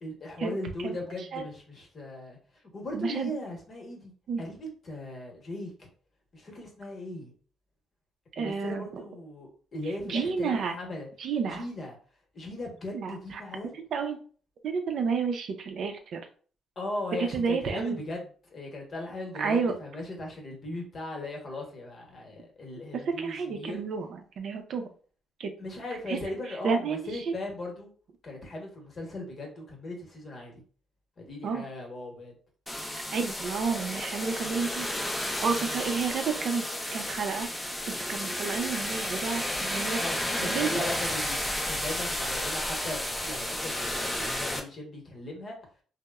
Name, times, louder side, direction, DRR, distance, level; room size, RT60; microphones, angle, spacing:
voice 1, 0.0-2.4 2.7-4.1 4.4-5.9 6.3-7.3 8.4-11.1 11.5-12.0 12.3-13.7 16.8-23.8 25.6-27.9 28.2-30.5 31.2-32.3 35.6-35.8 40.0-41.4 41.7-45.6, left 1 dB, 45° left, 0 dB, 0.9 m, -38 dB
voice 2, 2.9-3.3 4.3-4.4 8.4-9.0 9.8-10.7 11.2-11.6 12.9-13.4 13.7-14.2 14.6-16.2 17.2-18.0 19.4-19.7 23.2-24.8 25.4-25.5 26.1-26.2 26.5-27.3 31.4-31.6 33.1-34.9 35.2-36.6 36.9-37.5 38.1-40.0 40.4-40.8, right 5 dB, 65° right, 5 dB, 0.5 m, -31 dB
sound 1, 32.7-44.6, left 1 dB, 15° left, 0.5 m, -32 dB
2.9 x 2.0 x 2.3 m, 0.42 s
cardioid pair, 90°, 0 cm